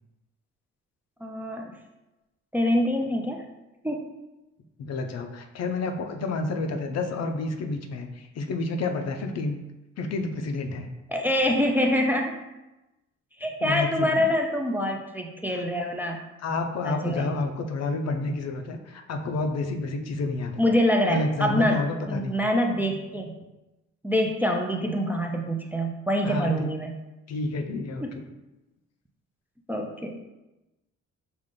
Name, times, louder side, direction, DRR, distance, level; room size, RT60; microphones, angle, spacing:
voice 1, 1.2-1.8 2.5-3.4 3.8-4.1 11.1-12.4 13.4-16.2 16.8-17.3 20.6-23.3 24.0-27.0 28.0-28.2 29.7-30.2, equal, 5° right, 1 dB, 0.4 m, -25 dB
voice 2, 4.8-9.6 10.0-10.9 13.6-14.2 15.5-15.6 16.4-20.6 21.1-22.4 26.2-26.7 27.3-28.1, left 3 dB, 60° left, 5 dB, 0.6 m, -30 dB
5.0 x 2.5 x 3.7 m, 1.0 s
cardioid pair, 90°, 30 cm